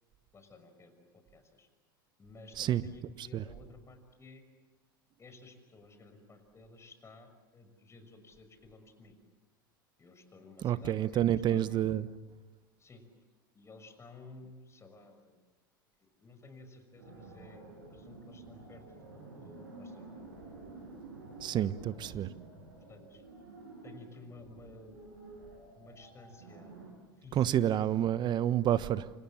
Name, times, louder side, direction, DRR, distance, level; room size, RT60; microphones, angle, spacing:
voice 1, 0.3-1.7 2.2-4.4 5.2-9.2 10.0-11.8 12.8-13.0 13.5-15.4 16.0-20.2 21.9-22.2 22.9-23.2 23.8-25.1 25.7-26.8 27.2-27.8, left 3 dB, 25° left, 6.1 m, -54 dB
voice 2, 10.6-12.1 21.4-22.3 27.3-29.1, right 11 dB, 40° right, 1.2 m, -29 dB
sound 1, 17.0-26.9, right 3 dB, 80° right, 7.3 m, -50 dB
29.5 x 27.0 x 7.3 m
hypercardioid pair, 90°, 12 cm